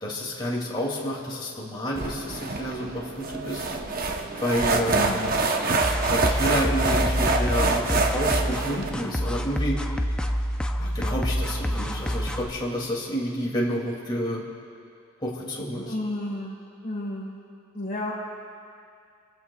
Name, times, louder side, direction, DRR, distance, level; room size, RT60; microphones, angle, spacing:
voice 1, 0.0-3.7 4.4-5.3 6.1-9.8 10.8-14.4 15.2-15.9, equal, 20° left, -3 dB, 2.4 m, -29 dB
sound 1, 2.0-8.9, right 3 dB, 45° right, 0.9 m, -26 dB
voice 2, 4.9-5.2 15.8-16.6 16.8-17.4 17.7-18.1, left 1 dB, 40° left, -4 dB, 1.6 m, -31 dB
sound 2, 5.8-12.5, equal, 5° left, 0.5 m, -27 dB
28.0 x 15.5 x 2.4 m, 2.4 s
head